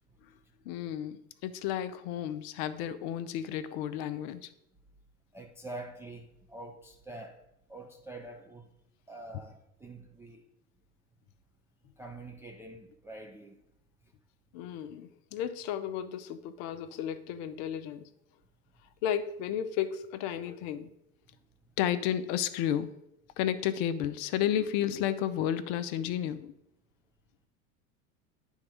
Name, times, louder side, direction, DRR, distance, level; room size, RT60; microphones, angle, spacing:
voice 1, 0.7-4.5 14.5-18.1 19.0-20.9 21.8-22.9 23.4-26.5, left 10 dB, 50° left, 12 dB, 0.6 m, -32 dB
voice 2, 5.3-7.4 7.7-8.7 9.1-10.5 12.0-13.6, right 2 dB, 5° right, 1 dB, 0.3 m, -45 dB
9.7 x 3.6 x 4.9 m, 0.82 s
figure-of-eight pair, 80°, 43 cm